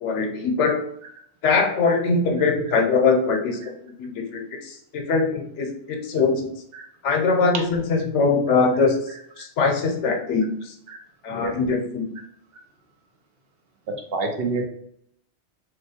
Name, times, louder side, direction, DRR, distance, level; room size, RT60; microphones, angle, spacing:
voice 1, 0.0-0.8 1.4-6.5 7.0-9.0 9.4-10.7 11.2-12.1, left 4 dB, 75° left, 3 dB, 1.0 m, -22 dB
voice 2, 13.9-14.6, right 3 dB, 60° right, 3 dB, 0.7 m, -27 dB
2.9 x 2.2 x 4.1 m, 0.67 s
omnidirectional pair, 1.2 m